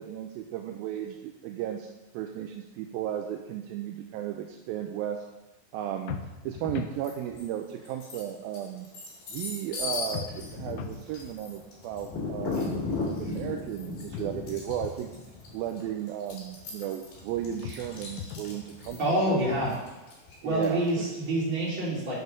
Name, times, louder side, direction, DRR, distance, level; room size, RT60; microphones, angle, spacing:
voice 1, 0.0-5.3 5.7-6.2 6.4-8.9 9.3-15.1 15.5-19.4 20.4-21.1, right 10 dB, 80° right, 4 dB, 2.3 m, -35 dB
sound 1, 6.1-7.0 10.1-11.0 14.1-15.0 17.6-18.6, left 9 dB, 85° left, 2.6 m, -39 dB
sound 2, 7.0-7.5 7.9-21.1, left 3 dB, 70° left, 4.2 m, -37 dB
voice 2, 19.0-19.7 20.4-22.1, right 1 dB, 35° right, -6 dB, 3.6 m, -26 dB
7.9 x 7.3 x 6.5 m, 1.1 s
omnidirectional pair, 4.3 m